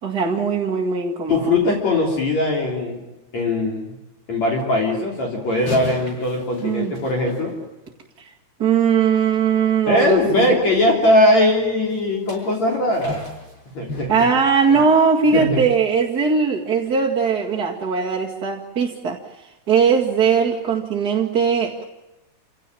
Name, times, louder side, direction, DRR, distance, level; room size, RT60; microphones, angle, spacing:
voice 1, 0.0-1.4 6.6-6.9 8.6-10.5 14.1-19.2 19.7-21.8, right 6 dB, 35° right, -2 dB, 1.6 m, -19 dB
voice 2, 1.3-3.0 3.3-3.9 4.3-7.5 9.9-13.2 13.7-14.1 14.7-14.8 15.3-15.6, left 1 dB, 45° left, 0 dB, 4.5 m, -20 dB
sound 1, 5.5-8.1 11.9-15.7 16.1-16.3 16.9-17.0, left 2 dB, 25° left, 8.6 m, -37 dB
28.5 x 17.0 x 9.1 m, 0.98 s
omnidirectional pair, 4.6 m